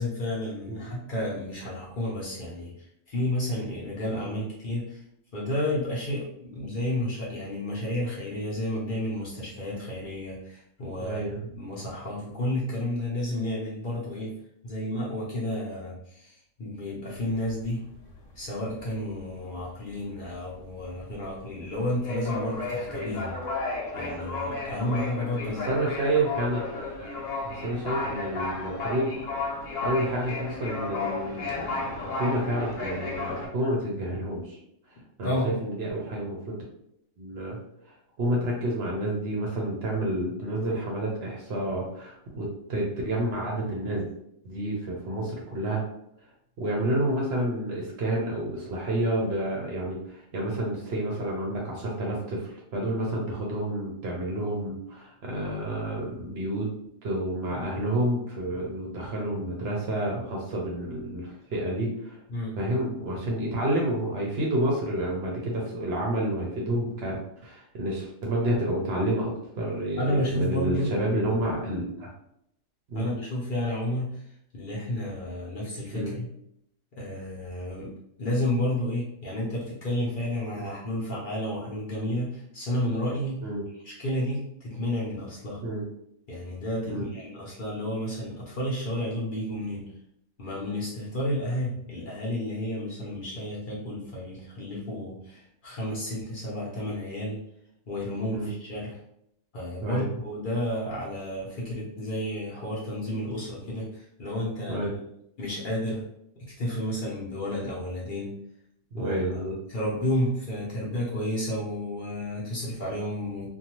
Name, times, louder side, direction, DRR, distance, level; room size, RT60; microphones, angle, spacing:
voice 1, 0.0-5.0 5.3-11.3 11.5-14.3 14.6-17.8 18.4-23.4 23.9-25.6 35.2-35.5 62.3-62.5 70.0-70.9 71.2-71.4 72.9-74.2 74.5-76.3 77.0-77.9 78.2-83.4 83.8-85.6 86.3-89.9 90.4-97.4 97.9-99.0 99.5-104.8 105.4-106.0 106.6-108.3 109.0-109.4 109.7-113.5, left 1 dB, 45° left, -5 dB, 0.8 m, -31 dB
voice 2, 0.7-1.0 4.2-4.4 11.0-11.5 14.8-14.9 25.4-27.2 27.4-29.1 29.8-34.6 35.2-36.5 37.2-37.6 38.2-44.1 44.4-45.8 46.6-56.7 57.0-62.2 62.6-72.1 72.9-73.1 75.9-76.1 80.5-80.6 83.4-83.6 85.6-85.8 86.9-87.1 98.3-98.5 99.8-100.1 104.7-104.9 108.9-109.6, right 1 dB, 60° right, -2 dB, 0.8 m, -29 dB
sound 1, 17.2-18.4 18.7-19.0 19.2-33.5, left 3 dB, 75° left, 1.0 m, -33 dB
2.6 x 2.2 x 2.9 m, 0.74 s
omnidirectional pair, 1.4 m